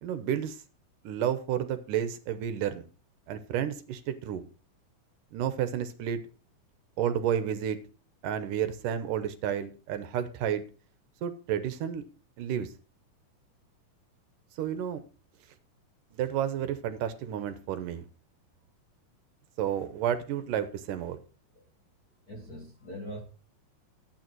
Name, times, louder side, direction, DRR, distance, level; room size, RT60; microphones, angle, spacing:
voice 1, 0.0-0.6 1.0-2.8 3.3-4.4 5.3-6.2 7.0-7.8 8.2-10.6 11.2-12.0 12.4-12.7 14.6-15.0 16.1-18.1 19.6-21.2, right 9 dB, 75° right, 2.4 m, -31 dB
voice 2, 22.3-23.2, equal, 40° left, 1.4 m, -42 dB
11.5 x 8.8 x 4.5 m
omnidirectional pair, 3.9 m